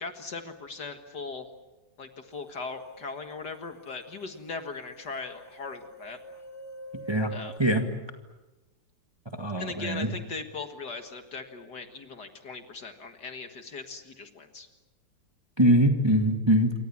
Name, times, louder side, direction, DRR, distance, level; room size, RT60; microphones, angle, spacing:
voice 1, 0.0-1.5 2.0-6.2 7.3-7.6 9.6-14.7, left 4 dB, 50° left, 6 dB, 2.1 m, -39 dB
sound 1, 3.5-3.6 3.9-7.6, right 1 dB, 35° left, 1.6 m, -45 dB
voice 2, 9.4-10.1 15.6-16.7, equal, 15° right, 4 dB, 1.6 m, -22 dB
28.0 x 24.5 x 7.3 m, 1.1 s
omnidirectional pair, 2.4 m